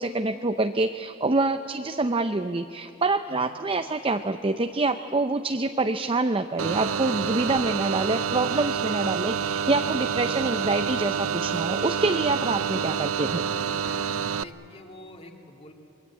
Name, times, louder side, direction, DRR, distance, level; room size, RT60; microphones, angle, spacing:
voice 1, 0.0-13.5, right 3 dB, 25° right, 7 dB, 0.6 m, -26 dB
sound 1, 6.6-14.4, right 7 dB, 75° right, 0.5 m, -28 dB
voice 2, 14.3-15.7, left 1 dB, 25° left, 2 dB, 2.4 m, -46 dB
27.0 x 22.0 x 8.4 m, 2.9 s
head